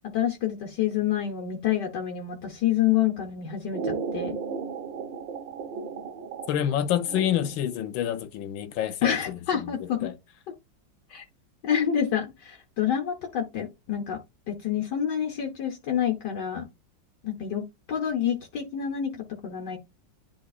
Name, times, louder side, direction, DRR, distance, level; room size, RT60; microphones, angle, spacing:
voice 1, 0.1-4.4 9.0-10.1 11.1-11.2 11.6-14.2 14.5-16.7 17.2-17.6 17.9-19.8, left 9 dB, 65° left, 1.5 m, -28 dB
sound 1, 3.7-7.8, right 5 dB, 80° right, 1.4 m, -35 dB
voice 2, 6.5-9.7 10.0-10.1, left 11 dB, 90° left, 1.5 m, -28 dB
10.5 x 3.8 x 2.4 m
omnidirectional pair, 2.0 m